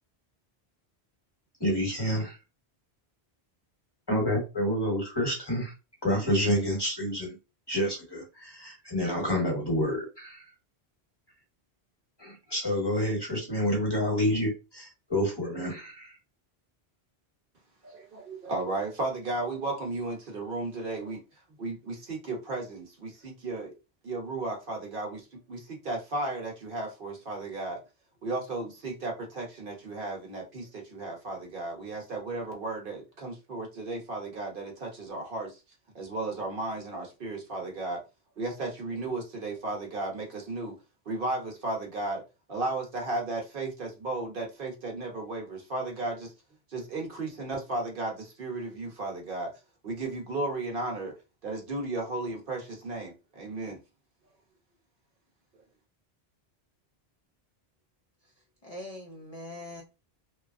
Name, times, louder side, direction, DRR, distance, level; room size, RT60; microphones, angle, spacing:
voice 1, 1.6-2.4 4.1-5.7 6.0-7.4 7.7-10.4 12.2-16.2, equal, 25° left, 0.9 m, -28 dB
voice 2, 17.8-21.2 21.6-23.7 24.0-27.8 28.2-35.6 35.9-38.0 38.4-40.8 41.1-42.2 42.5-46.3 46.7-49.5 49.8-51.1 51.4-53.8, right 2 dB, 60° right, 0.9 m, -34 dB
voice 3, 58.6-59.8, left 1 dB, 45° left, 0.5 m, -42 dB
2.9 x 2.3 x 2.4 m
omnidirectional pair, 1.1 m